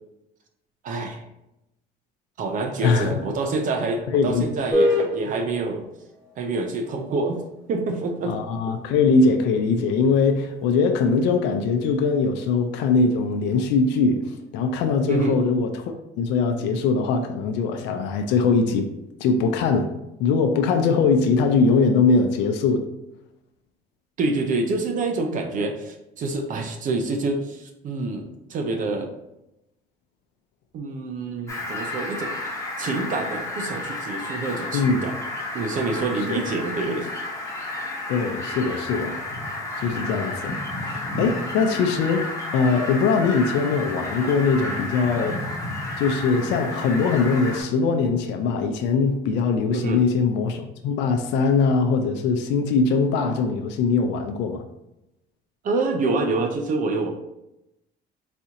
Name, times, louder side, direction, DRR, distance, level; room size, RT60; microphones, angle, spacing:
voice 1, 0.8-1.2 2.4-5.9 6.4-7.4 7.7-8.4 8.7-8.8 15.1-15.4 24.2-29.1 30.7-32.3 32.8-35.1 35.5-37.1 49.7-50.0 55.6-57.1, right 3 dB, 45° right, 4 dB, 0.6 m, -27 dB
voice 2, 2.8-3.2 4.1-4.5 8.3-14.2 14.5-18.9 19.2-19.9 20.2-22.8 34.7-35.0 36.3-36.4 38.1-39.2 39.8-45.4 46.0-54.6, left 4 dB, 85° left, 5 dB, 0.5 m, -21 dB
sound 1, 4.7-14.6, left 1 dB, 20° right, 1.3 m, -32 dB
Fowl, 31.5-47.6, left 2 dB, 15° left, 1.1 m, -31 dB
4.2 x 2.8 x 3.6 m, 0.88 s
cardioid pair, 140°, 18 cm